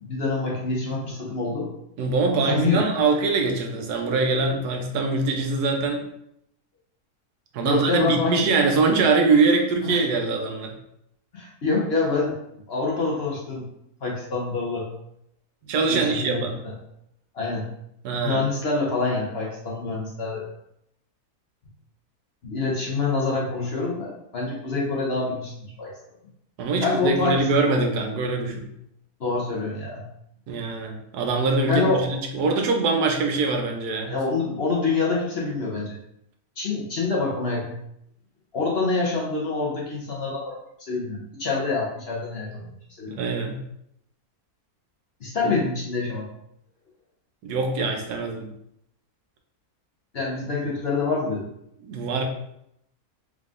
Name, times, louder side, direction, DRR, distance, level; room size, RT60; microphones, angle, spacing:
voice 1, 0.0-1.7 2.3-2.8 7.6-8.4 9.8-10.0 11.3-12.3 12.7-13.7 14.0-14.9 15.9-16.7 17.3-17.7 18.2-20.4 22.4-25.5 25.8-25.9 26.8-27.5 29.2-30.1 31.7-32.0 34.1-35.9 36.6-37.8 38.5-40.5 40.9-42.7 43.0-43.2 45.2-46.3 50.1-51.4, left 3 dB, 50° left, -3 dB, 0.8 m, -26 dB
voice 2, 2.0-6.0 7.5-10.7 15.6-16.6 18.0-18.4 26.6-28.7 30.5-34.2 43.1-43.6 45.4-45.5 47.4-48.5 51.8-52.2, right 3 dB, 85° right, 3 dB, 1.2 m, -23 dB
3.7 x 3.6 x 2.4 m, 0.76 s
omnidirectional pair, 1.6 m